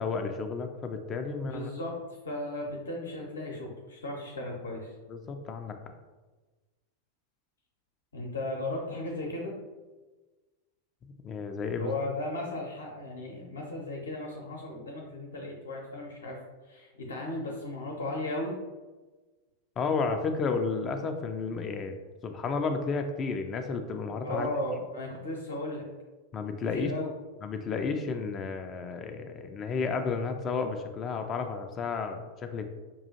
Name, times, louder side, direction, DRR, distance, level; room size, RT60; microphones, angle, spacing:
voice 1, 0.0-1.7 5.1-5.8 11.2-11.9 19.8-22.0 22.2-24.5 26.3-26.9 27.4-32.7, left 4 dB, 30° left, 6 dB, 0.4 m, -32 dB
voice 2, 1.5-4.9 8.1-9.6 11.7-16.4 16.6-18.5 24.2-25.8 26.7-27.1, left 1 dB, 70° left, -1 dB, 0.7 m, -36 dB
5.3 x 2.4 x 2.7 m, 1.2 s
figure-of-eight pair, 90°, 0 cm